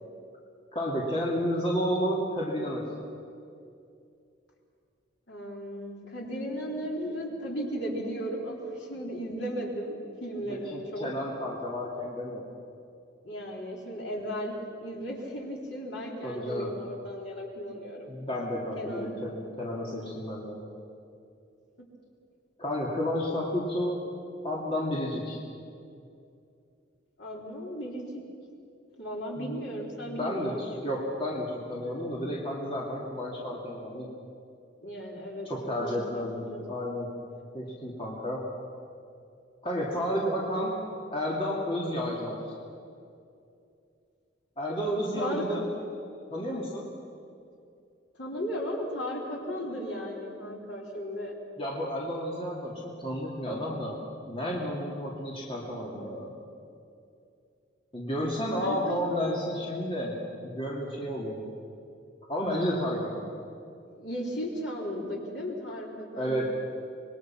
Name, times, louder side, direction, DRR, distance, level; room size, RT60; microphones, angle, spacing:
voice 1, 0.7-2.9 10.5-12.5 16.2-16.8 18.1-20.6 22.6-24.0 24.4-25.4 29.4-29.7 30.0-34.1 35.4-37.1 37.5-38.5 39.6-40.8 41.1-42.5 44.6-45.7 46.3-46.9 51.6-54.0 54.3-56.3 57.9-61.4 62.3-63.2 66.2-66.5, equal, 25° left, -4 dB, 2.6 m, -31 dB
voice 2, 5.3-11.1 13.2-14.5 14.8-18.1 18.8-19.1 27.2-28.0 29.0-30.9 34.8-35.5 35.8-36.2 36.5-36.7 44.8-45.6 46.4-46.5 48.2-51.4 58.5-59.4 63.9-66.5, equal, 55° left, -2 dB, 3.8 m, -36 dB
26.0 x 21.5 x 5.9 m, 2.5 s
head